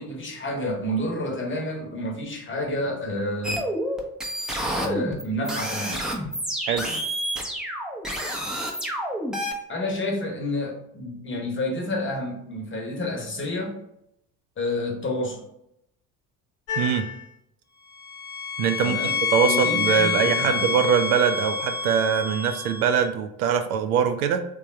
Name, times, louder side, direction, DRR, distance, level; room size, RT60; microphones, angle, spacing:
voice 1, 0.0-3.6 4.7-6.1 9.7-13.8 14.6-15.4 18.8-20.7, left 1 dB, 25° left, 1 dB, 0.9 m, -29 dB
sound 1, 3.4-9.5, equal, ahead, 0.6 m, -29 dB
sound 2, 16.7-17.2 18.0-23.1, left 6 dB, 60° left, 0.7 m, -27 dB
voice 2, 16.8-17.1 18.6-24.4, right 7 dB, 70° right, 8 dB, 0.5 m, -23 dB
3.4 x 2.3 x 4.2 m, 0.78 s
figure-of-eight pair, 55°, 45 cm